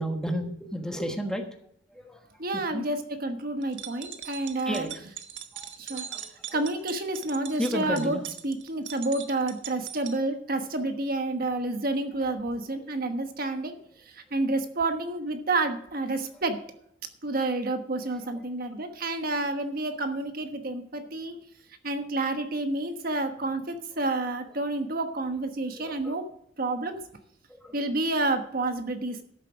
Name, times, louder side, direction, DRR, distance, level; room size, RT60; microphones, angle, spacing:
voice 1, 0.0-1.4 1.9-2.2 2.5-2.9 4.6-5.0 5.5-6.6 7.6-8.2 12.2-12.4 12.8-13.0 16.3-16.4 18.0-18.5 24.5-24.6 25.8-26.1 27.5-27.8, equal, 5° left, 4 dB, 1.3 m, -34 dB
voice 2, 2.4-4.8 5.8-6.0 6.5-8.2 8.4-13.8 14.1-16.6 17.2-21.4 21.8-26.2 26.6-27.0 27.7-29.2, right 2 dB, 50° right, 7 dB, 1.2 m, -29 dB
sound 1, 3.6-10.2, right 9 dB, 80° right, 1.2 m, -41 dB
13.0 x 7.6 x 4.9 m, 0.72 s
head